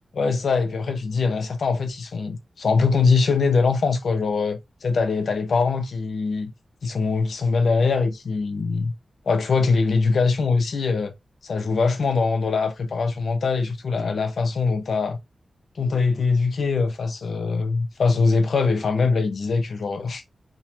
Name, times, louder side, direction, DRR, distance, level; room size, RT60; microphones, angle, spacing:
voice 1, 0.1-6.5 6.8-8.9 9.3-11.1 11.4-15.2 15.8-20.2, left 4 dB, 80° left, 0.8 m, -22 dB
3.7 x 3.0 x 2.7 m
wide cardioid pair, 130°, 0 cm